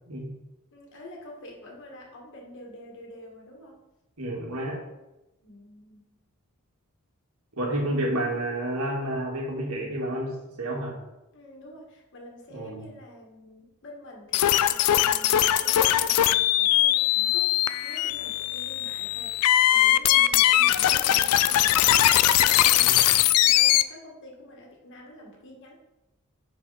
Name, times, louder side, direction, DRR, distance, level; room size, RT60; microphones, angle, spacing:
voice 1, 0.7-3.8 5.4-6.1 11.3-25.7, left 1 dB, 55° left, -1 dB, 2.0 m, -46 dB
voice 2, 4.2-4.8 7.6-11.0 12.5-12.9 22.8-23.1, right 1 dB, 70° right, -1 dB, 2.2 m, -30 dB
sound 1, 14.3-23.8, left 13 dB, 80° left, 0.4 m, -21 dB
10.0 x 4.8 x 4.3 m, 0.97 s
head